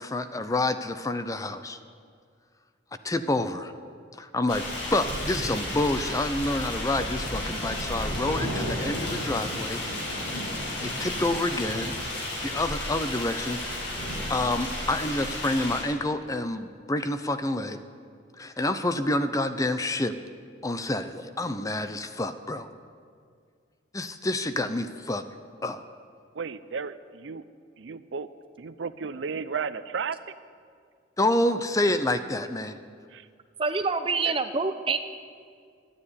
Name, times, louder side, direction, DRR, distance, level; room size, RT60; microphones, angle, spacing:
voice 1, 0.0-1.8 3.0-3.7 4.2-9.8 10.8-12.0 12.4-13.8 14.3-17.8 18.4-20.1 20.6-22.7 23.9-25.2 25.6-25.8 31.2-32.8, left 2 dB, 20° left, 10 dB, 0.6 m, -28 dB
sound 1, 4.5-15.8, left 1 dB, 85° left, 5.3 m, -32 dB
voice 2, 26.4-26.9 27.2-27.4 27.8-28.3 28.6-30.2, right 5 dB, 85° right, 14 dB, 0.5 m, -33 dB
voice 3, 33.6-35.0, right 4 dB, 30° right, 8 dB, 0.8 m, -26 dB
12.5 x 9.8 x 9.6 m, 2.1 s
head